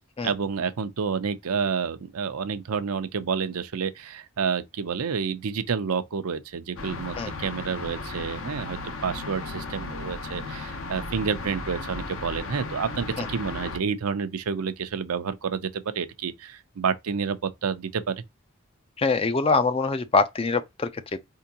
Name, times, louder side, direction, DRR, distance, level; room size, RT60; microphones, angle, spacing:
voice 1, 0.2-18.2, right 6 dB, 85° right, 0.6 m, -29 dB
sound 1, 6.8-13.8, left 3 dB, 65° left, 0.7 m, -35 dB
voice 2, 19.0-21.2, left 4 dB, 25° left, 0.3 m, -24 dB
4.4 x 3.7 x 2.8 m
head